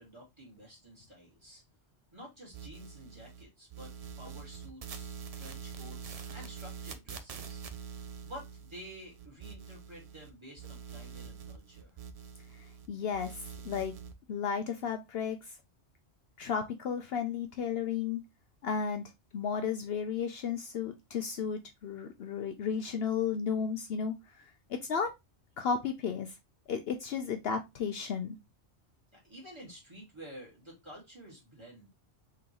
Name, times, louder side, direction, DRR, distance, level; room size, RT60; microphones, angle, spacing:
voice 1, 0.0-1.6 2.1-7.6 8.2-12.0 29.1-31.9, equal, 25° right, -3 dB, 2.0 m, -50 dB
sound 1, 2.5-3.4 3.7-10.3 10.6-12.9 13.1-14.1, right 6 dB, 50° right, 0.4 m, -45 dB
voice 2, 12.9-13.9 14.3-15.4 16.4-18.2 18.6-19.0 19.3-24.1 24.7-25.1 25.6-26.3 26.7-28.4, left 6 dB, 65° left, 6 dB, 0.7 m, -33 dB
3.8 x 3.7 x 2.8 m, 0.21 s
omnidirectional pair, 1.2 m